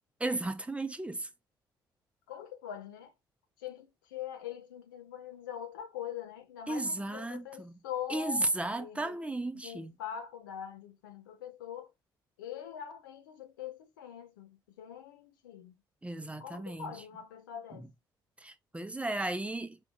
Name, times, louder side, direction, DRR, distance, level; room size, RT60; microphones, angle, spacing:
voice 1, 0.2-1.3 6.7-7.8 8.1-9.9 16.0-17.0 18.4-19.8, right 2 dB, 10° right, 0.8 m, -34 dB
voice 2, 2.3-3.1 3.6-8.5 8.8-9.2 9.6-11.9 12.4-15.8 16.4-17.9, left 10 dB, 75° left, 0.8 m, -43 dB
5.4 x 3.5 x 2.7 m
figure-of-eight pair, 45°, 11 cm